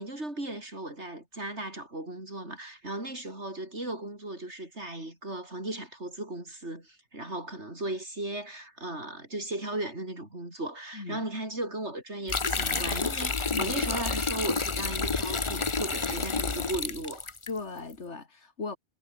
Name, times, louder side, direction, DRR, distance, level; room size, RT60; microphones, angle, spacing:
voice 1, 0.0-17.3, right 1 dB, 80° right, 7.2 m, -36 dB
voice 2, 10.9-11.2 13.5-13.7 17.5-18.8, left 4 dB, 85° left, 2.8 m, -37 dB
sound 1, 12.3-17.5, left 4 dB, 30° left, 1.0 m, -29 dB
omnidirectional pair, 1.2 m